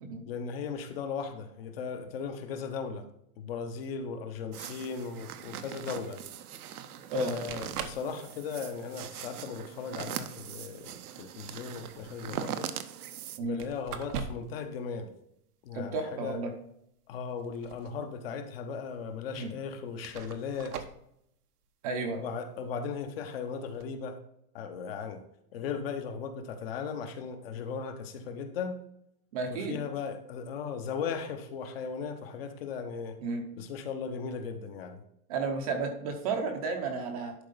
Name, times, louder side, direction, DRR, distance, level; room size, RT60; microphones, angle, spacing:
voice 1, 0.3-3.1 3.4-6.2 7.2-12.7 13.4-15.1 15.6-16.4 17.1-20.9 22.1-24.2 24.5-25.2 25.5-28.8 29.5-33.2 33.6-35.0, left 6 dB, 40° left, 7 dB, 1.0 m, -37 dB
sound 1, 4.5-13.4, right 10 dB, 75° right, 0.9 m, -41 dB
sound 2, 7.5-8.1 8.5-8.9 9.9-10.0 11.7-12.5 13.6-14.6 14.9-15.0 17.3-18.1 18.4-18.5 19.3-19.4 20.0-21.0 23.6-23.8, right 6 dB, 90° right, 1.2 m, -41 dB
voice 2, 15.7-16.5 19.3-19.5 21.8-22.2 29.3-29.8 33.2-33.4 35.3-37.3, right 3 dB, 25° right, 4 dB, 0.7 m, -32 dB
11.0 x 4.5 x 4.0 m, 0.74 s
supercardioid pair, 170°, 45 cm